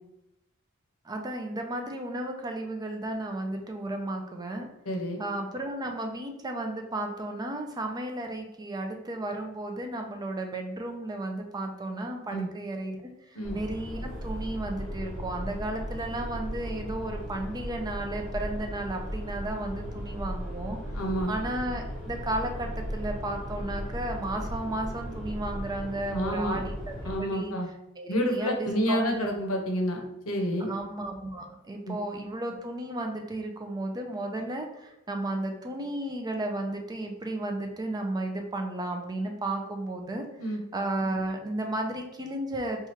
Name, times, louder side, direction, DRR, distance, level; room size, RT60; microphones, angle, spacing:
voice 1, 1.1-4.7 5.2-13.0 13.5-20.8 21.3-26.9 27.2-27.5 28.0-29.3 30.6-40.2 40.7-42.9, right 1 dB, 20° right, 3 dB, 0.4 m, -33 dB
voice 2, 4.9-5.2 12.3-12.5 13.3-13.6 20.9-21.3 26.1-26.6 27.0-27.7 28.1-30.7 31.8-31.9 40.4-40.6, equal, 85° left, 2 dB, 0.7 m, -29 dB
sound 1, 13.4-27.2, equal, 5° left, 1.0 m, -36 dB
2.9 x 2.4 x 4.3 m, 0.86 s
head